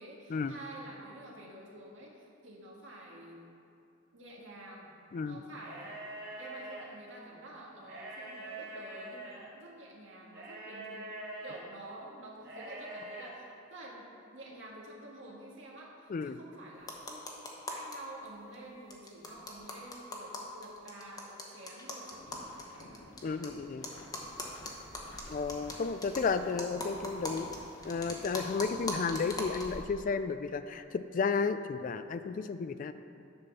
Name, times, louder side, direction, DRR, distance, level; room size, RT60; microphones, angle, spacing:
voice 1, 0.0-3.4 4.1-4.9 5.2-6.1 6.4-11.1 11.4-17.4 17.7-23.1 26.1-26.5, right 1 dB, 80° right, -3 dB, 1.8 m, -49 dB
sound 1, 5.5-6.8 7.8-9.5 10.3-11.6 12.4-13.3, right 2 dB, 55° right, 1.4 m, -44 dB
sound 2, 16.8-18.0 18.3-18.4 18.5-18.6 18.9-23.5 23.8-29.8, left 2 dB, 20° left, 1.0 m, -41 dB
sound 3, 22.1-29.1, left 1 dB, 80° left, 1.0 m, -53 dB
voice 2, 23.2-23.9 25.3-27.5 27.8-32.9, left 5 dB, 45° left, 11 dB, 0.3 m, -33 dB
10.5 x 4.2 x 6.8 m, 2.6 s
head